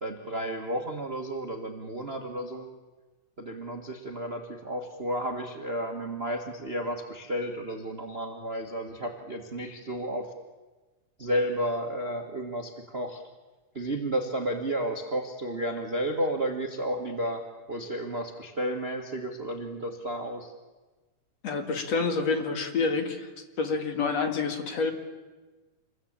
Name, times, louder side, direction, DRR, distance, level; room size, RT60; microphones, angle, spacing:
voice 1, 0.0-2.7 3.4-10.3 11.2-13.2 13.7-20.5, right 1 dB, 30° right, 4 dB, 1.3 m, -32 dB
voice 2, 21.4-23.3 23.6-24.9, left 4 dB, 55° left, 6 dB, 3.1 m, -28 dB
27.0 x 21.5 x 8.9 m, 1.2 s
omnidirectional pair, 3.7 m